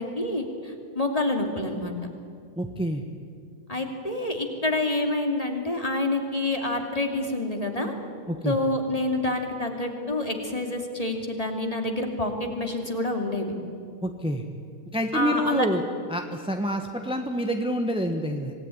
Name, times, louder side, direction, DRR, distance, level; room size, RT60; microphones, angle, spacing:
voice 1, 0.0-1.9 3.7-7.9 8.4-13.5 15.1-15.7, left 2 dB, 15° left, 3 dB, 2.7 m, -27 dB
voice 2, 2.6-3.0 8.3-8.6 14.0-14.5 14.9-15.8 16.1-18.5, equal, 5° right, 4 dB, 0.8 m, -27 dB
26.0 x 18.5 x 9.9 m, 2.3 s
omnidirectional pair, 2.3 m